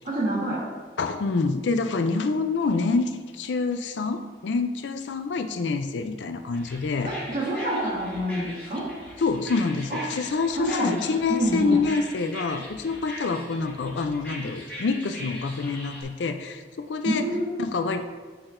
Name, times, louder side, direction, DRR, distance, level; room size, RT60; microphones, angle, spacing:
voice 1, 0.0-0.7 7.0-8.9 9.9-10.0 10.5-11.8 17.0-17.5, right 1 dB, 50° right, -10 dB, 1.4 m, -27 dB
voice 2, 1.0-7.1 9.2-17.2 17.6-18.0, left 4 dB, 85° left, 8 dB, 0.4 m, -26 dB
sound 1, 6.5-16.0, left 1 dB, 10° left, 1.1 m, -41 dB
6.1 x 5.9 x 2.6 m, 1.4 s
head